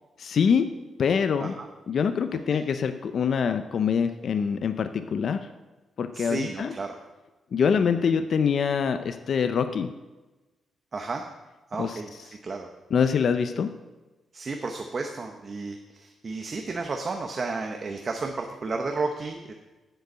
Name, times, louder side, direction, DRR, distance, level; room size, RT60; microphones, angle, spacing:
voice 1, 0.2-0.7 1.0-1.6 1.9-5.5 6.0-6.7 7.5-9.9 11.8-12.0 12.9-13.7, left 6 dB, 50° left, 9 dB, 0.5 m, -24 dB
voice 2, 6.1-7.0 7.8-8.0 10.9-11.2 11.7-12.7 14.3-19.5, right 3 dB, 30° right, 3 dB, 0.8 m, -33 dB
7.9 x 6.8 x 8.0 m, 1.2 s
wide cardioid pair, 155°, 0 cm